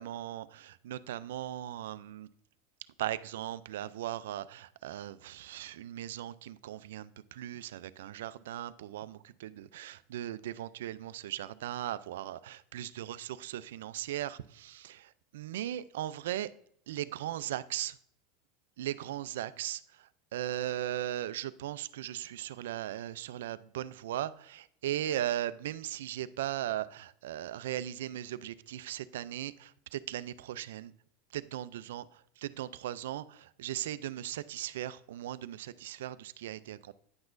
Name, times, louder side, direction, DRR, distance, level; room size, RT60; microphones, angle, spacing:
voice 1, 0.0-2.3 3.0-16.5 16.9-18.0 18.8-30.9 31.3-36.9, right 12 dB, 80° right, 0.3 m, -38 dB
9.4 x 6.0 x 2.6 m
hypercardioid pair, 105°, 0 cm